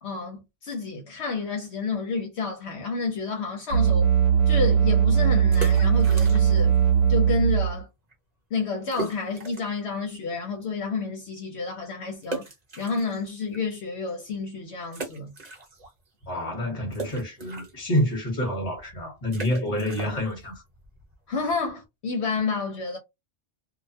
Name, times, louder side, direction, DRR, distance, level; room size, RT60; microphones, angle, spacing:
voice 1, 0.0-4.1 4.5-6.8 7.1-7.9 8.5-12.5 12.8-15.3 21.3-23.0, left 4 dB, 70° left, 1.0 m, -30 dB
sound 1, 3.7-7.8, right 8 dB, 65° right, 1.0 m, -20 dB
sound 2, 5.5-6.8 7.0-7.1 7.7-7.8 8.1-8.2 8.9-9.8 10.3-10.4 12.2-13.6 14.1-14.2 14.9-16.1 16.3-21.8, right 3 dB, 40° right, 1.0 m, -39 dB
voice 2, 16.3-20.6, left 1 dB, 35° left, 1.2 m, -28 dB
2.5 x 2.1 x 2.6 m
omnidirectional pair, 1.2 m